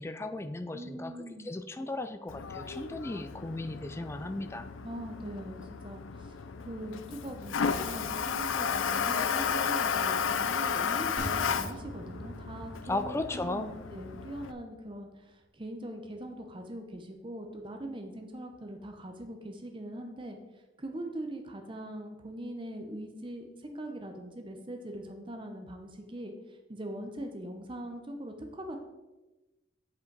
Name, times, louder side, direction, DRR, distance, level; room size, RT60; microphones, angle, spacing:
voice 1, 0.0-1.1 1.4-4.7 12.9-13.7, left 2 dB, 15° left, 9 dB, 0.3 m, -36 dB
voice 2, 0.7-1.5 4.8-20.4 20.8-28.8, right 1 dB, 25° right, 4 dB, 0.7 m, -42 dB
Toilet flush, 2.3-14.5, left 6 dB, 80° left, 0.5 m, -33 dB
sound 1, 11.2-14.6 14.9-15.0, right 1 dB, 80° right, 2.3 m, -44 dB
8.1 x 5.2 x 4.6 m, 1.1 s
head